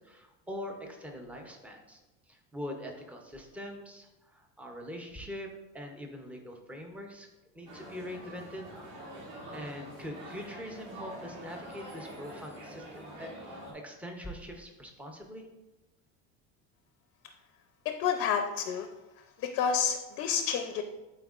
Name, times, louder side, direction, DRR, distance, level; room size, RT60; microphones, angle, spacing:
voice 1, 0.0-2.0 2.3-7.3 7.5-8.7 9.5-15.5, equal, 5° right, 2 dB, 0.6 m, -43 dB
sound 1, 7.6-13.7, right 1 dB, 65° right, 2.4 m, -45 dB
voice 2, 17.8-18.9 19.4-20.8, left 7 dB, 40° left, 6 dB, 0.5 m, -29 dB
11.5 x 4.4 x 2.4 m, 1.0 s
cardioid pair, 170°, 30 cm